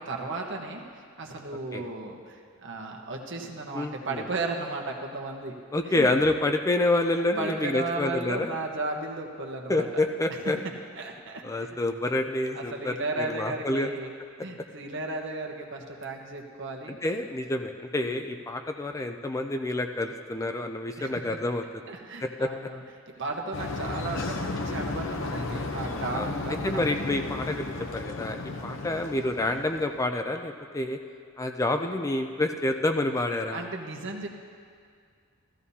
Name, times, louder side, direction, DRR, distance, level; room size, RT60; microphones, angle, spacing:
voice 1, 0.0-5.5 5.9-6.1 7.4-9.9 11.0-11.8 12.0-12.2 12.5-14.1 14.4-17.0 18.0-18.4 21.0-21.2 21.9-26.9 28.5-28.8 33.5-34.3, right 2 dB, 60° right, 1 dB, 1.1 m, -35 dB
voice 2, 3.7-4.2 5.7-8.5 9.7-10.6 11.4-13.9 17.0-21.6 22.2-22.7 26.1-26.3 26.6-31.0 31.4-33.7, left 2 dB, 15° left, 6 dB, 0.4 m, -28 dB
sound 1, 23.5-30.0, left 2 dB, 65° left, 0.8 m, -34 dB
15.5 x 14.0 x 2.8 m, 2.2 s
head